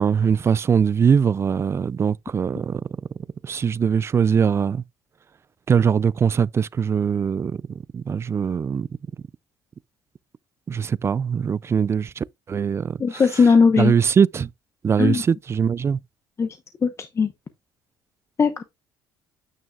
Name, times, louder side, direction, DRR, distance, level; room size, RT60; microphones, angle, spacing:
voice 1, 0.0-2.8 3.4-4.8 5.7-7.6 7.9-8.9 10.7-13.2 13.8-14.5 14.8-16.0, right 7 dB, 30° right, 0.3 m, -21 dB
voice 2, 13.0-13.9 15.0-15.2 16.4-16.5 16.8-17.3 18.4-18.6, left 5 dB, 30° left, 0.9 m, -18 dB
9.3 x 6.2 x 2.3 m
supercardioid pair, 85°, 9 cm